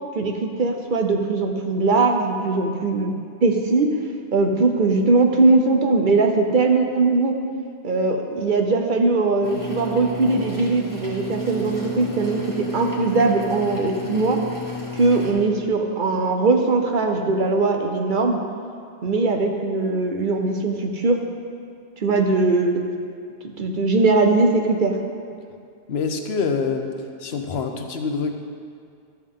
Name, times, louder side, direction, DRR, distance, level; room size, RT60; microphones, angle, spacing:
voice 1, 0.2-3.1 3.4-3.9 4.3-7.3 7.8-14.4 14.9-18.4 19.0-21.2 22.0-22.8 23.6-24.9, right 3 dB, 55° right, 3 dB, 0.9 m, -20 dB
sound 1, 9.4-15.3, equal, 20° left, 1.7 m, -32 dB
voice 2, 25.9-26.9 27.2-28.3, left 5 dB, 85° left, 5 dB, 1.0 m, -25 dB
12.5 x 7.2 x 3.7 m, 2.3 s
omnidirectional pair, 1.0 m